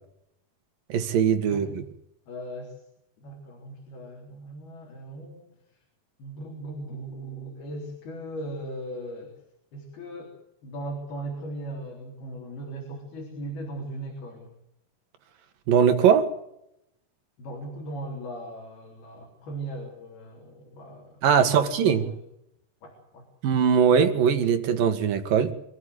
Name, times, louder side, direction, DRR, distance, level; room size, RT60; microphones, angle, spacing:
voice 1, 0.9-1.7 15.7-16.3 21.2-22.0 23.4-25.5, right 7 dB, 65° right, 3.3 m, -21 dB
voice 2, 1.5-1.8 2.3-2.8 3.2-5.8 6.2-9.4 9.7-10.4 10.6-14.6 17.4-22.2 22.8-23.3, right 1 dB, 75° left, 6.0 m, -38 dB
26.5 x 14.0 x 8.1 m
omnidirectional pair, 4.5 m